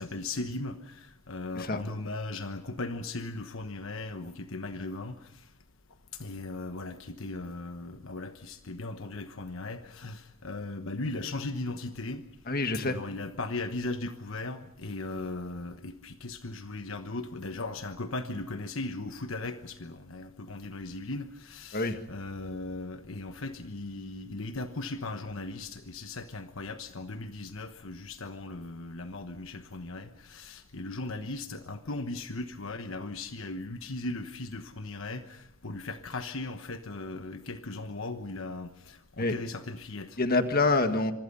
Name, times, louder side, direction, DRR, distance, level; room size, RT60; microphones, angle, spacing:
voice 1, 0.0-5.2 6.2-12.2 12.8-40.2, left 2 dB, 70° left, 8 dB, 1.2 m, -38 dB
voice 2, 12.5-13.0 21.7-22.0 39.2-39.3 40.2-41.1, left 3 dB, 45° left, 8 dB, 1.7 m, -26 dB
26.0 x 24.5 x 5.5 m, 0.77 s
head